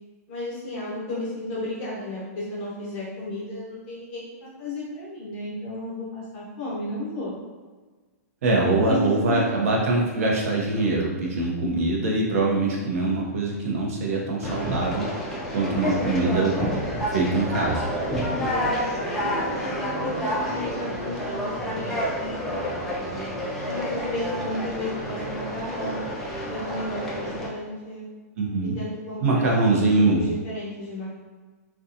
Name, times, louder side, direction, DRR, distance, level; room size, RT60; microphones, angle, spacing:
voice 1, 0.3-7.4 8.5-9.7 15.6-16.6 18.0-18.7 19.1-22.8 23.6-26.0 26.5-28.0 28.7-31.1, left 1 dB, 35° left, -7 dB, 0.9 m, -33 dB
voice 2, 8.4-17.9 28.4-28.8 29.2-30.2, right 2 dB, 60° right, -2 dB, 0.7 m, -23 dB
Conversation, 14.4-27.5, equal, 5° left, 0.3 m, -29 dB
2.7 x 2.3 x 2.5 m, 1.3 s
hypercardioid pair, 155°, 9 cm